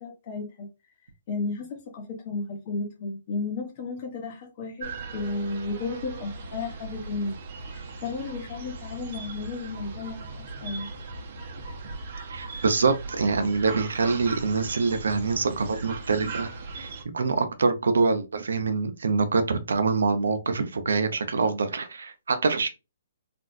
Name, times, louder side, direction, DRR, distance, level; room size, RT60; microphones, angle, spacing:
voice 1, 0.0-0.7 1.3-7.3 7.7-10.9, left 3 dB, 40° left, 1.0 m, -33 dB
sound 1, 4.8-17.0, right 3 dB, 45° right, 0.8 m, -38 dB
voice 2, 12.3-22.7, right 4 dB, 80° right, 0.6 m, -25 dB
3.5 x 2.4 x 2.5 m
hypercardioid pair, 150°, 0 cm